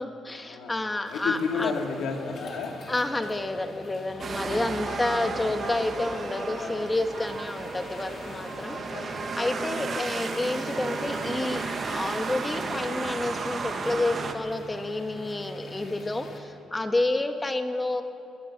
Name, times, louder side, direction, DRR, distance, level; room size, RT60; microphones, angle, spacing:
voice 1, 0.0-1.7 2.9-18.0, left 2 dB, 20° left, 6 dB, 1.8 m, -29 dB
voice 2, 1.1-2.7 9.7-10.1, left 5 dB, 80° left, 3 dB, 2.5 m, -31 dB
sound 1, 1.1-16.4, left 2 dB, 50° left, 3.7 m, -42 dB
sound 2, 4.2-14.3, right 4 dB, 45° right, 1.9 m, -34 dB
24.0 x 21.0 x 6.2 m, 2.7 s
cardioid pair, 90°, 0 cm